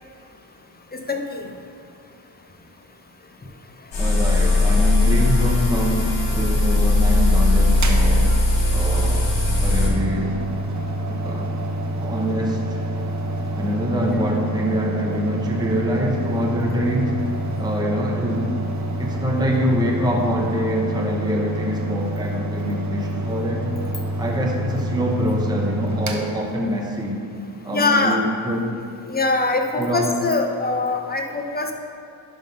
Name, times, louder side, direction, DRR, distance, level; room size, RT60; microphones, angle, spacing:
voice 1, 0.9-1.5 27.7-28.2 29.1-31.7, left 3 dB, 20° left, 3 dB, 0.7 m, -22 dB
sound 1, 3.9-9.9, left 2 dB, 70° left, 1.9 m, -18 dB
voice 2, 4.0-8.4 8.7-9.2 9.6-10.4 11.1-11.5 12.0-12.8 13.5-17.2 17.6-18.5 19.0-23.7 24.2-27.3 27.6-28.7 29.8-30.1, equal, 10° right, -1 dB, 0.9 m, -25 dB
Mechanical fan, 7.7-27.1, right 1 dB, 35° right, 0.8 m, -28 dB
11.0 x 3.7 x 5.3 m, 2.4 s
wide cardioid pair, 120°, 48 cm